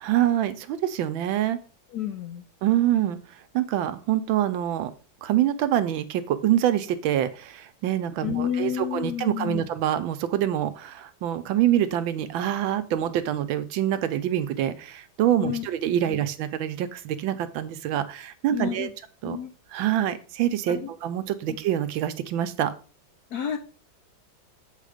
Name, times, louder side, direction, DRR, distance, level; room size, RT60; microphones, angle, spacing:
voice 1, 0.0-1.6 2.6-3.2 3.5-4.9 5.2-18.9 19.2-19.4 19.7-22.7, right 11 dB, 75° right, 11 dB, 1.4 m, -25 dB
voice 2, 1.9-2.4 8.2-9.7 15.4-15.7 18.5-18.9 19.2-19.5 20.7-20.9 23.3-23.6, left 9 dB, 70° left, 6 dB, 0.9 m, -30 dB
7.4 x 3.8 x 4.9 m, 0.37 s
omnidirectional pair, 2.2 m